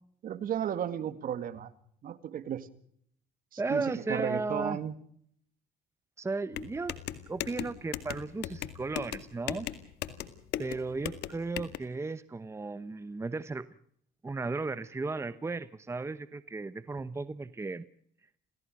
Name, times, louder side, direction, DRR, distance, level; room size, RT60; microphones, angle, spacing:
voice 1, 0.2-1.7 2.0-2.7 3.5-4.9, right 9 dB, 55° right, 12 dB, 2.1 m, -34 dB
voice 2, 3.6-4.8 6.2-7.0 7.3-9.7 10.6-13.7 14.2-17.8, right 3 dB, 15° right, 14 dB, 0.9 m, -35 dB
sound 1, 6.5-11.8, left 12 dB, 80° left, 2.1 m, -38 dB
28.0 x 17.5 x 6.5 m, 0.66 s
cardioid pair, 110°, 17 cm